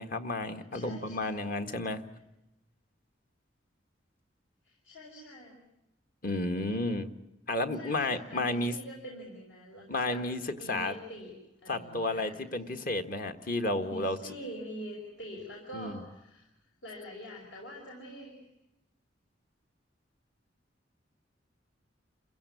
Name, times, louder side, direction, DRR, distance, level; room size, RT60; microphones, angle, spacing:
voice 1, 0.0-2.0 6.2-7.1 7.5-8.8 9.9-11.0 11.7-14.3 15.7-16.0, left 2 dB, 50° left, 7 dB, 1.6 m, -32 dB
voice 2, 0.7-1.6 4.6-5.6 7.8-10.2 10.6-11.3 11.6-12.4 13.7-16.5 16.8-18.4, equal, 70° left, -1 dB, 5.6 m, -45 dB
28.5 x 16.0 x 9.7 m, 0.90 s
head